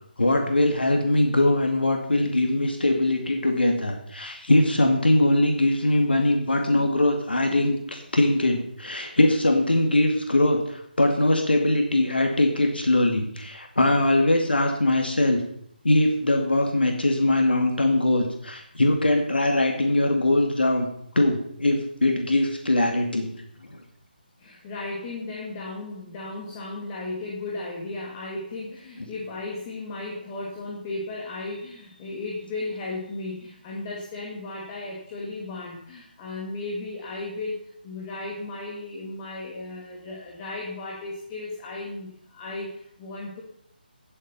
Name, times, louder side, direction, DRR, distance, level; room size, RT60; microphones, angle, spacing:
voice 1, 0.2-15.4 15.8-20.9 21.1-23.3 29.0-29.1, left 1 dB, 75° left, 3 dB, 2.3 m, -22 dB
voice 2, 24.4-43.4, left 2 dB, 20° left, -2 dB, 2.2 m, -35 dB
16.5 x 8.0 x 5.7 m, 0.68 s
figure-of-eight pair, 150°, 5 cm